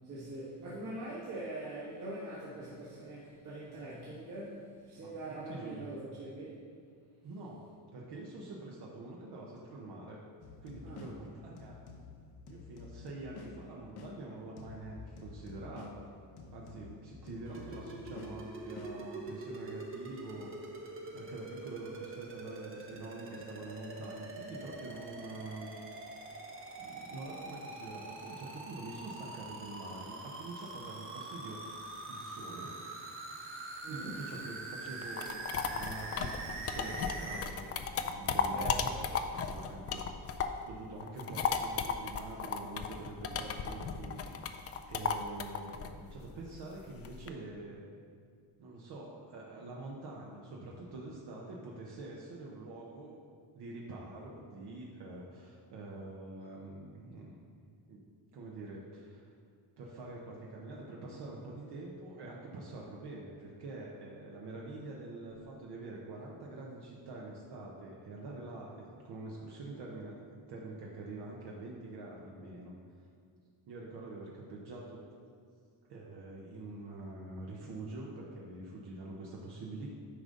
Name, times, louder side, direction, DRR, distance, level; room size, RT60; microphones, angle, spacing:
voice 1, 0.0-6.6 10.8-11.0 33.8-34.3 38.5-39.0, right 2 dB, 50° right, -8 dB, 1.5 m, -43 dB
voice 2, 5.0-5.9 7.2-7.6 7.9-10.2 10.6-11.7 12.5-16.1 16.5-20.5 21.1-25.7 26.8-31.6 32.1-32.8 33.6-40.0 40.7-44.3 44.9-47.8 48.6-53.2 53.5-57.3 57.9-58.0 58.3-59.3 59.8-72.7 73.0-73.1 73.7-75.0 75.9-79.9, right 2 dB, 70° right, -3 dB, 1.1 m, -45 dB
sound 1, 10.4-19.5, left 5 dB, 65° left, 0.8 m, -51 dB
sound 2, 17.5-37.4, right 2 dB, 30° right, 0.9 m, -44 dB
sound 3, 34.9-40.7 41.0-47.3, left 6 dB, 35° left, 0.4 m, -35 dB
10.0 x 5.4 x 3.9 m, 2.2 s
cardioid pair, 160°, 42 cm